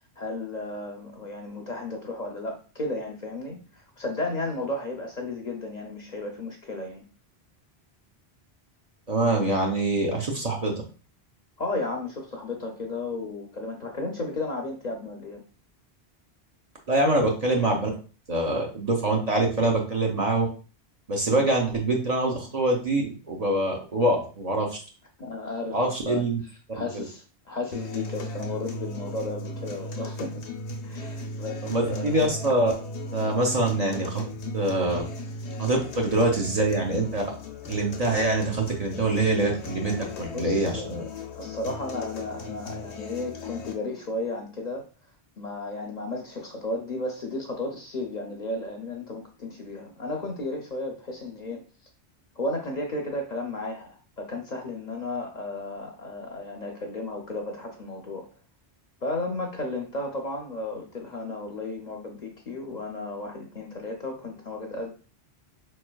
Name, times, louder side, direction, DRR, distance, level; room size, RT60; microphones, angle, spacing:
voice 1, 0.2-7.0 11.6-15.4 25.2-26.2 26.7-30.4 30.8-32.1 35.6-35.8 40.3-41.0 41.3-44.8 45.4-51.6 52.4-58.3 59.0-64.9, left 2 dB, 50° left, 2 dB, 0.6 m, -34 dB
voice 2, 9.1-10.7 16.9-17.9 18.3-20.5 21.1-24.8 25.7-26.4 26.9-27.0 31.6-32.7 33.1-34.2 34.5-35.1 35.6-37.2 37.7-40.8, right 2 dB, 45° right, 0 dB, 0.7 m, -24 dB
sound 1, 27.7-43.7, left 2 dB, 85° left, 0.9 m, -37 dB
4.3 x 3.1 x 2.2 m, 0.36 s
omnidirectional pair, 1.1 m